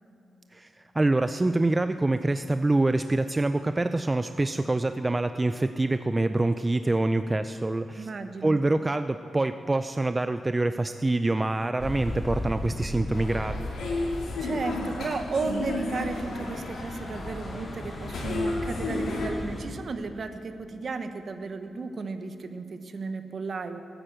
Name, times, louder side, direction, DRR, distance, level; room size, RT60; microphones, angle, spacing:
voice 1, 0.5-8.1 8.4-13.7, right 2 dB, 20° right, 10 dB, 0.4 m, -26 dB
voice 2, 8.0-8.6 14.4-23.8, right 4 dB, 55° right, 8 dB, 1.0 m, -34 dB
sound 1, 11.8-19.6, left 1 dB, 15° left, 1.9 m, -37 dB
sound 2, 13.1-19.3, left 2 dB, 85° left, 2.5 m, -33 dB
13.5 x 10.0 x 7.6 m, 2.6 s
cardioid pair, 85°, 0 cm